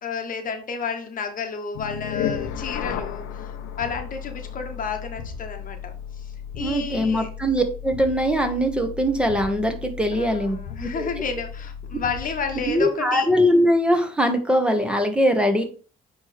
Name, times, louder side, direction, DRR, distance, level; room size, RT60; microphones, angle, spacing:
voice 1, 0.0-7.3 10.1-13.3, left 5 dB, 50° left, 5 dB, 1.1 m, -31 dB
sound 1, 1.7-12.9, left 8 dB, 85° left, 0.7 m, -34 dB
voice 2, 6.6-10.6 10.9-11.1 12.6-15.6, equal, 5° right, 5 dB, 1.3 m, -21 dB
8.9 x 3.2 x 3.3 m, 0.39 s
supercardioid pair, 70°, 18 cm